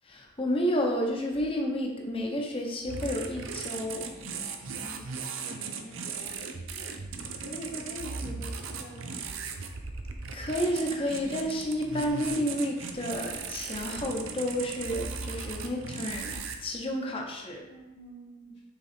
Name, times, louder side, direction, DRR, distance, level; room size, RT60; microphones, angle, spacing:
voice 1, 0.0-4.1 10.3-17.6, equal, 30° left, 0 dB, 0.9 m, -31 dB
sound 1, 2.8-16.6, right 5 dB, 90° right, 0.7 m, -37 dB
voice 2, 4.8-6.9 7.2-9.7 17.7-18.6, equal, 65° left, -8 dB, 1.3 m, -45 dB
6.5 x 3.9 x 4.4 m, 1.1 s
head